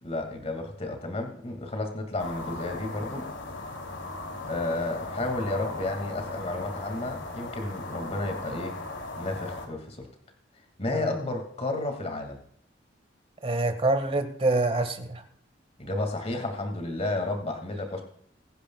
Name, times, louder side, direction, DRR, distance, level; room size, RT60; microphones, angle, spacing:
voice 1, 0.0-3.2 4.5-8.7 9.2-10.1 10.8-12.4 15.8-18.0, left 2 dB, 35° left, 4 dB, 2.2 m, -32 dB
sound 1, 2.2-9.7, left 2 dB, 80° left, 2.9 m, -37 dB
voice 2, 13.4-15.2, right 2 dB, 30° right, 8 dB, 1.6 m, -26 dB
22.0 x 10.0 x 2.3 m, 0.67 s
head